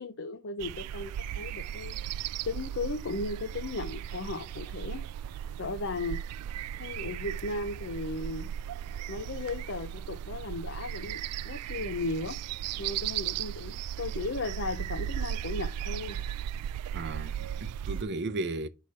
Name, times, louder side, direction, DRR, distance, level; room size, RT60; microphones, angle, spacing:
voice 1, 0.0-2.0 2.4-5.0 5.6-6.2 6.8-8.5 9.1-12.4 12.8-16.2, left 3 dB, 55° left, 0.7 m, -36 dB
sound 1, 0.6-18.0, right 10 dB, 85° right, 0.3 m, -36 dB
voice 2, 16.9-18.7, right 2 dB, 50° right, 0.6 m, -35 dB
5.6 x 4.9 x 6.4 m
head